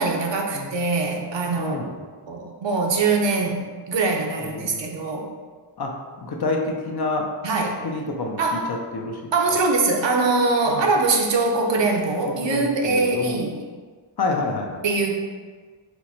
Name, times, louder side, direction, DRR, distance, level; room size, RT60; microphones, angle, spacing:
voice 1, 0.0-1.8 2.2-5.4 7.4-7.8 8.4-8.7 9.3-13.6 14.8-15.1, right 3 dB, 65° right, 1 dB, 0.7 m, -22 dB
voice 2, 1.6-1.9 4.4-4.9 5.8-7.3 7.8-9.6 10.7-10.9 12.3-13.4 14.2-14.8, left 3 dB, 55° left, 1 dB, 0.6 m, -28 dB
4.5 x 2.1 x 4.1 m, 1.5 s
wide cardioid pair, 80°, 47 cm